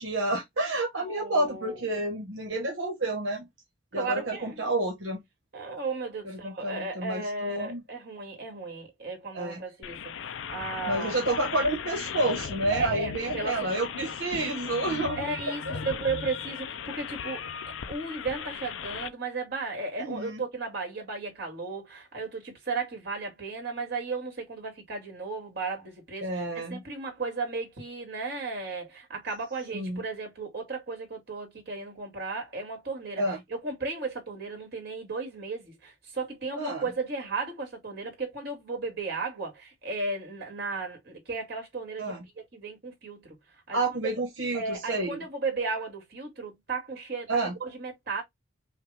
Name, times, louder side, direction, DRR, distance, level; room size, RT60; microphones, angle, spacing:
voice 1, 0.0-3.4 3.9-5.2 6.2-7.8 9.3-9.6 10.9-15.2 15.7-15.8 20.0-20.4 26.2-26.8 29.7-30.0 33.2-33.4 36.5-36.8 42.0-42.2 43.7-45.2 47.3-47.5, right 2 dB, 80° right, 1.4 m, -29 dB
voice 2, 1.0-1.8 3.9-4.7 5.5-11.3 12.7-13.7 15.2-17.5 17.9-33.2 33.5-43.3 43.7-43.8 44.1-44.2 44.5-48.2, right 3 dB, 55° right, 2.4 m, -35 dB
sound 1, 9.8-19.1, left 7 dB, 80° left, 0.5 m, -37 dB
5.6 x 2.4 x 3.4 m
head